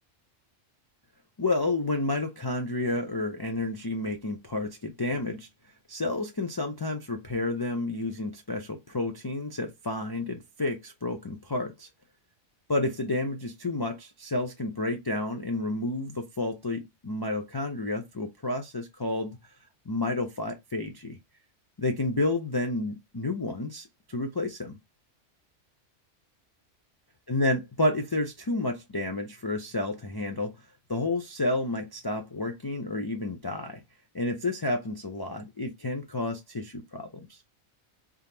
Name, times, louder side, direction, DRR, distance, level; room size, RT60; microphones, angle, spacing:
voice 1, 1.4-5.5 5.9-11.9 12.7-19.4 19.9-21.2 21.8-24.8 27.3-30.5 30.9-33.8 34.1-37.4, left 2 dB, 35° left, 0.4 m, -30 dB
3.7 x 3.5 x 2.8 m
omnidirectional pair, 1.2 m